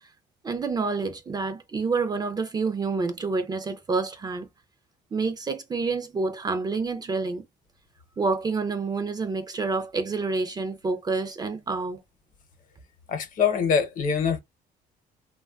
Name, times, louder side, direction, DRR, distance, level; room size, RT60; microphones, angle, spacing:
voice 1, 0.4-4.5 5.1-7.4 8.2-12.0, right 4 dB, 25° right, 0.4 m, -28 dB
voice 2, 13.1-14.4, left 6 dB, 55° left, 0.8 m, -24 dB
3.1 x 2.3 x 2.2 m
cardioid pair, 110°, 17 cm